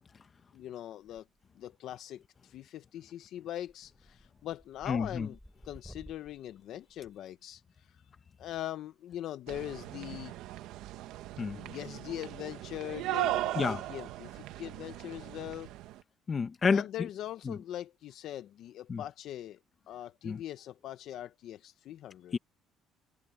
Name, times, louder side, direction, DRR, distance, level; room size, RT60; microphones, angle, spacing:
voice 1, 0.5-1.2 1.5-5.4 5.6-7.9 8.4-10.3 11.6-15.7 16.7-19.6 19.9-22.4, left 12 dB, 55° left, 0.7 m, -41 dB
sound 1, 1.0-1.6 1.9-2.4 2.8-3.0 3.4-7.8 9.1-9.3 10.5-11.3 11.6-11.8 12.4-12.5 12.7-12.8 13.2-13.4 13.6-13.7 15.3-15.6, equal, ahead, 8.0 m, -56 dB
voice 2, 4.9-5.3 11.4-11.6 13.5-13.8 16.3-16.8 17.4-17.6 18.9-19.0 20.2-20.4 22.3-22.4, left 5 dB, 25° left, 1.2 m, -29 dB
sound 2, 9.5-16.0, right 15 dB, 75° right, 1.1 m, -38 dB
cardioid pair, 170°, 0 cm